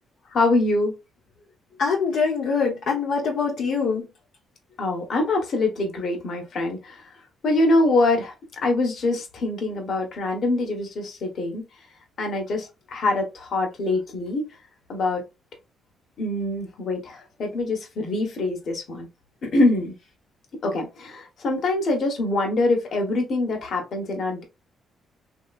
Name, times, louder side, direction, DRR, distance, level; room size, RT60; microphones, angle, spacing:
voice 1, 0.3-0.9 4.8-7.0 7.4-8.3 8.6-11.6 12.2-14.5 14.9-15.2 16.2-19.1 19.4-19.9 20.6-24.4, left 2 dB, 60° left, 1.2 m, -24 dB
voice 2, 1.8-4.1, left 5 dB, 75° left, 0.9 m, -24 dB
3.0 x 2.8 x 2.4 m
cardioid pair, 90°, 0 cm